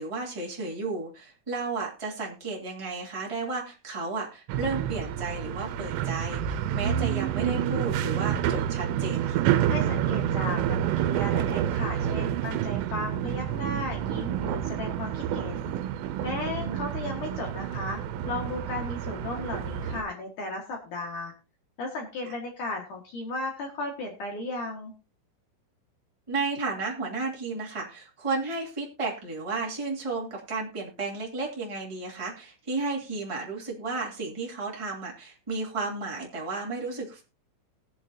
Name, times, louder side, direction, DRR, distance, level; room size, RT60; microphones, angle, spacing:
voice 1, 0.0-9.5 16.3-16.9 26.3-37.2, right 3 dB, 10° right, -3 dB, 1.4 m, -33 dB
sound 1, 4.5-20.0, right 10 dB, 85° right, 3.4 m, -28 dB
voice 2, 9.7-15.7 16.2-18.0 18.2-21.3 21.8-24.9, left 2 dB, 55° left, 0 dB, 2.4 m, -35 dB
20.5 x 7.1 x 2.8 m, 0.30 s
omnidirectional pair, 5.7 m